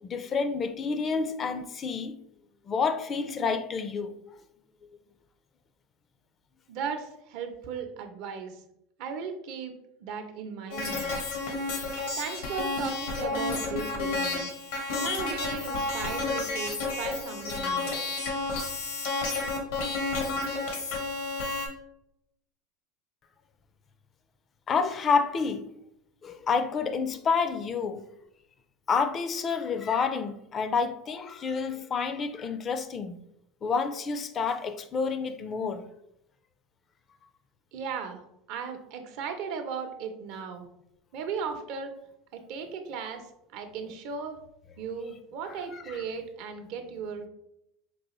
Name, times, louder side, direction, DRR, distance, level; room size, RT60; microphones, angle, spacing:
voice 1, 0.0-2.2 2.7-4.1 24.7-25.6 26.2-28.0 28.9-33.2 33.6-35.9 45.7-46.0, left 5 dB, 35° left, 0.4 m, -29 dB
voice 2, 6.7-8.6 9.0-9.7 10.0-11.2 12.2-14.5 14.9-18.0 37.7-38.2 38.5-40.7 41.1-41.9 42.3-43.2 43.5-44.4 44.8-47.3, right 6 dB, 65° right, 0.7 m, -36 dB
sound 1, 10.7-21.7, left 3 dB, 80° left, 0.9 m, -31 dB
4.6 x 2.4 x 3.0 m
supercardioid pair, 100°, 0 cm